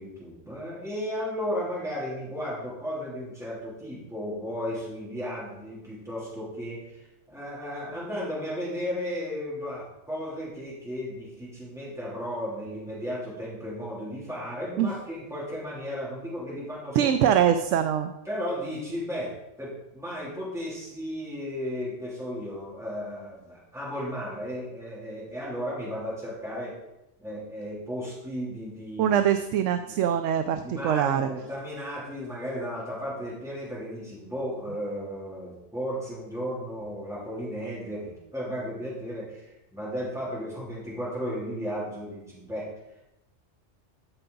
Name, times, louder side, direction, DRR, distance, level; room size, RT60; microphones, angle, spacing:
voice 1, 0.0-17.1 18.2-26.8 27.2-29.2 29.8-30.0 30.6-42.7, equal, ahead, -7 dB, 3.0 m, -34 dB
voice 2, 16.9-18.1 29.0-31.3, right 9 dB, 85° right, 9 dB, 0.9 m, -23 dB
13.5 x 5.7 x 3.9 m, 0.89 s
omnidirectional pair, 1.2 m